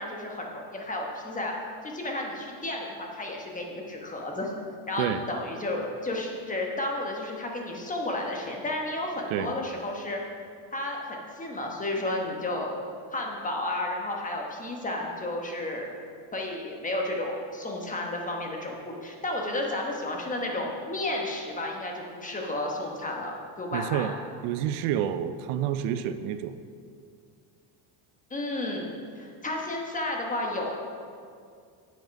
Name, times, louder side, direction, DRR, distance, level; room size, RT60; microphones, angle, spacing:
voice 1, 0.0-1.5 1.8-4.5 4.9-10.2 10.7-12.8 13.1-15.9 16.3-24.1 28.3-30.8, left 1 dB, 15° left, 0 dB, 1.1 m, -32 dB
voice 2, 23.7-24.1 24.4-26.6, right 10 dB, 80° right, 11 dB, 0.6 m, -29 dB
7.9 x 7.5 x 5.2 m, 2.3 s
cardioid pair, 150°, 50 cm